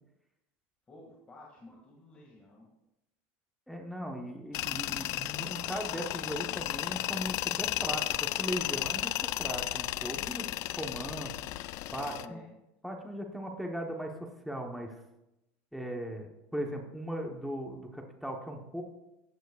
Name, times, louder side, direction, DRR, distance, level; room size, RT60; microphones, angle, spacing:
voice 1, 0.9-2.7 10.4-10.7 12.1-12.5, left 2 dB, 20° left, -4 dB, 2.0 m, -52 dB
voice 2, 3.7-11.3 11.9-12.4 12.8-15.0 15.7-18.8, equal, ahead, 1 dB, 1.0 m, -38 dB
Tools, 4.5-12.3, left 16 dB, 50° left, 0.4 m, -34 dB
15.0 x 9.1 x 2.4 m, 0.90 s
supercardioid pair, 145°, 7 cm